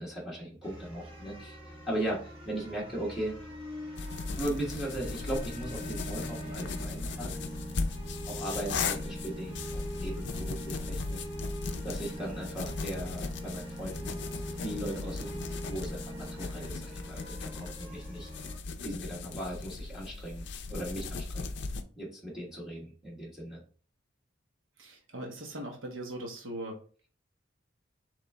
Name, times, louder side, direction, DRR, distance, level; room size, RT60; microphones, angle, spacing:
voice 1, 0.0-1.6 1.9-3.4 4.3-7.3 8.3-11.2 11.8-14.2 14.6-18.3 18.8-21.5 21.9-23.6, right 1 dB, ahead, -5 dB, 1.2 m, -38 dB
sound 1, 0.6-18.6, equal, 30° right, 1.4 m, -42 dB
sound 2, 3.9-21.8, left 4 dB, 60° left, 0.5 m, -38 dB
voice 2, 24.8-26.8, right 1 dB, 80° right, 0 dB, 1.0 m, -40 dB
4.0 x 3.4 x 3.4 m, 0.40 s
head